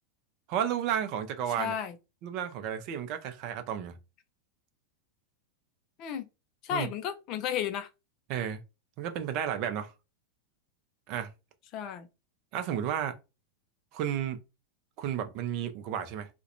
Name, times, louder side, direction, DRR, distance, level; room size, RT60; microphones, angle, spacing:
voice 1, 0.5-1.8 2.2-3.9 6.7-6.9 8.3-8.6 9.0-9.9 11.1-11.3 12.5-13.2 13.9-14.4 15.0-16.3, right 9 dB, 40° right, 0.5 m, -32 dB
voice 2, 1.6-2.0 6.0-6.3 6.6-7.9 11.7-12.1, left 9 dB, 40° left, 0.4 m, -33 dB
2.3 x 2.1 x 2.8 m
figure-of-eight pair, 90°, 0 cm